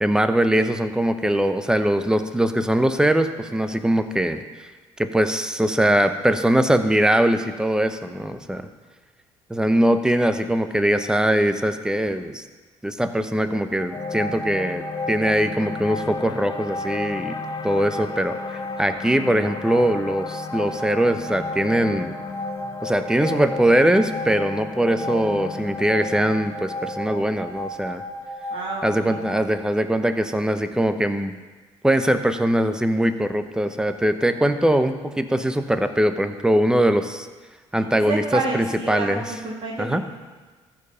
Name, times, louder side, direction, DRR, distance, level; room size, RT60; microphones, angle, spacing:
voice 1, 0.0-4.7 5.0-8.7 9.5-12.4 12.8-14.8 15.1-17.4 17.6-18.3 18.8-22.1 22.8-28.0 28.8-31.3 31.8-37.3 37.7-39.2 39.8-40.0, right 1 dB, 5° right, 9 dB, 0.8 m, -21 dB
sound 1, 13.6-29.4, equal, 20° left, 2.4 m, -35 dB
sound 2, 13.9-30.2, left 5 dB, 35° left, 0.6 m, -35 dB
voice 2, 28.5-29.2 37.7-40.1, right 3 dB, 50° right, -3 dB, 2.4 m, -29 dB
14.0 x 4.7 x 5.6 m, 1.3 s
supercardioid pair, 80°, 12 cm